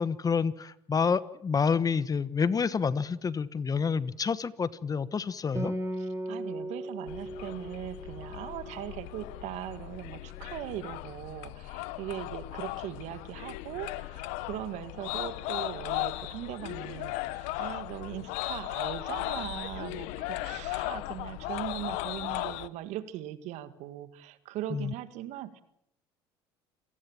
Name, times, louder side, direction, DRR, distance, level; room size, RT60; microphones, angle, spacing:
voice 1, 0.0-5.7 24.7-24.9, left 5 dB, 30° left, 17 dB, 1.2 m, -28 dB
Acoustic guitar, 5.6-9.3, right 1 dB, 20° right, 4.7 m, -37 dB
voice 2, 6.0-25.6, right 13 dB, 65° right, 12 dB, 1.9 m, -40 dB
sound 1, 7.1-22.7, left 19 dB, 70° left, 1.0 m, -37 dB
28.0 x 18.5 x 7.5 m, 0.77 s
hypercardioid pair, 75°, 13 cm